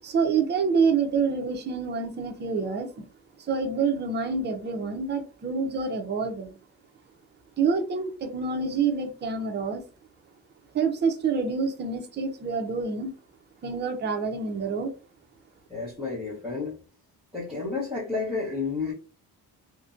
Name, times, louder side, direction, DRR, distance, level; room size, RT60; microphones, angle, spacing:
voice 1, 0.0-2.9 3.4-6.6 7.6-9.8 10.7-13.1 13.6-14.9, right 5 dB, 30° right, 4 dB, 0.5 m, -27 dB
voice 2, 15.7-16.7 17.3-18.9, left 4 dB, ahead, -9 dB, 0.9 m, -31 dB
2.5 x 2.1 x 2.5 m, 0.36 s
cardioid pair, 135°, 39 cm